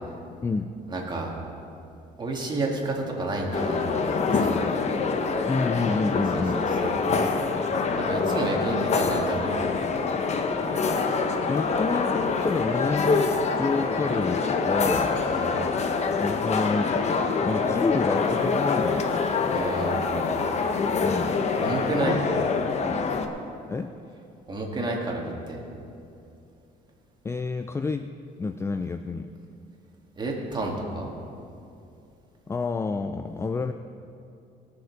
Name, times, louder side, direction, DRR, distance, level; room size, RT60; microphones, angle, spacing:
voice 1, 0.9-1.3 2.2-4.6 6.1-7.0 8.0-9.6 15.3-15.6 19.5-20.4 21.6-22.2 24.5-25.6 30.2-31.1, right 2 dB, 25° right, -1 dB, 2.1 m, -30 dB
sound 1, 3.5-23.3, left 4 dB, 40° left, 0.9 m, -25 dB
voice 2, 5.5-6.7 11.1-15.1 16.2-19.1 21.0-21.5 22.1-23.1 23.7-23.9 27.2-28.1 28.4-29.3 32.5-33.7, left 4 dB, 15° left, 9 dB, 0.3 m, -29 dB
18.0 x 6.6 x 4.7 m, 2.6 s
cardioid pair, 110°, 17 cm